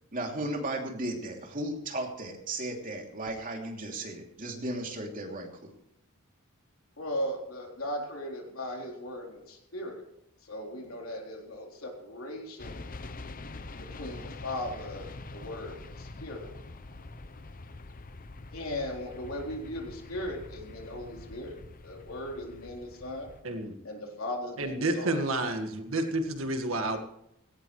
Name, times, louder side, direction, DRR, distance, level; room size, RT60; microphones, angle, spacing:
voice 1, 0.1-5.5, right 1 dB, 40° right, 1 dB, 2.9 m, -35 dB
voice 2, 7.0-10.1 10.4-12.8 13.8-16.6 18.5-21.6 21.8-23.3 23.8-25.2, left 1 dB, 70° left, 0 dB, 4.0 m, -38 dB
sound 1, 12.6-23.4, left 2 dB, 40° left, 0.7 m, -45 dB
voice 3, 23.4-23.7 24.6-27.0, right 2 dB, 70° right, 5 dB, 1.8 m, -30 dB
17.0 x 17.0 x 3.2 m, 0.79 s
head